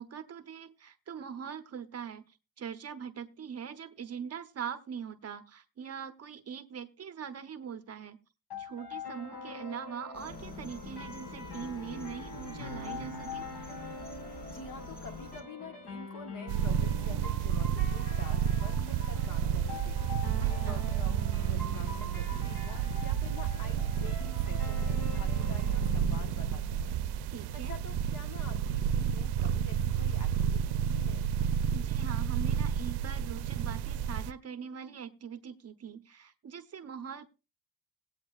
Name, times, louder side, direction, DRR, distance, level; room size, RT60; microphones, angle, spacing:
voice 1, 0.0-8.2 8.6-13.5 20.4-20.8 27.3-27.8 31.7-37.3, right 7 dB, 40° right, 9 dB, 0.8 m, -42 dB
sound 1, 8.5-27.5, left 3 dB, 70° left, 5.2 m, -44 dB
sound 2, 10.1-15.4, left 1 dB, 25° left, 2.8 m, -46 dB
voice 2, 14.4-20.0 20.4-21.1 21.5-31.3, left 4 dB, 55° left, 6 dB, 1.6 m, -48 dB
sound 3, 16.5-34.3, right 9 dB, 85° right, 0.6 m, -31 dB
19.5 x 8.6 x 2.4 m, 0.30 s
cardioid pair, 150°, 38 cm